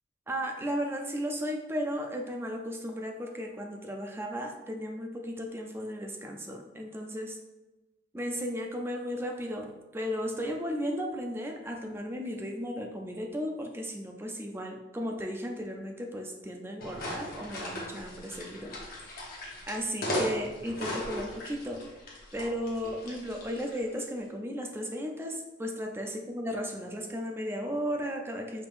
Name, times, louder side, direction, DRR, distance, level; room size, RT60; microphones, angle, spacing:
voice 1, 0.3-7.3 8.1-9.7 9.9-19.1 19.7-21.8 22.3-28.7, equal, 10° right, 2 dB, 0.4 m, -35 dB
sound 1, 16.8-23.8, equal, 50° left, 1.0 m, -37 dB
5.1 x 3.6 x 2.5 m, 1.1 s
head